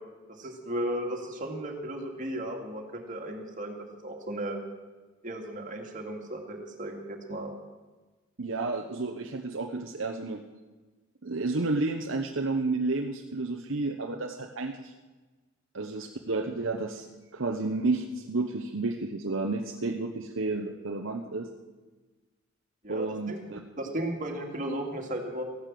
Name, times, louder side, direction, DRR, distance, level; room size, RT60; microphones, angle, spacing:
voice 1, 0.3-4.6 5.2-7.5 22.8-23.5 23.8-25.4, right 1 dB, 40° right, 2 dB, 2.5 m, -35 dB
voice 2, 8.4-10.4 11.2-14.9 15.7-17.1 17.3-21.5 22.9-23.6, right 3 dB, 65° right, 3 dB, 0.9 m, -31 dB
15.5 x 12.0 x 7.6 m, 1.3 s
head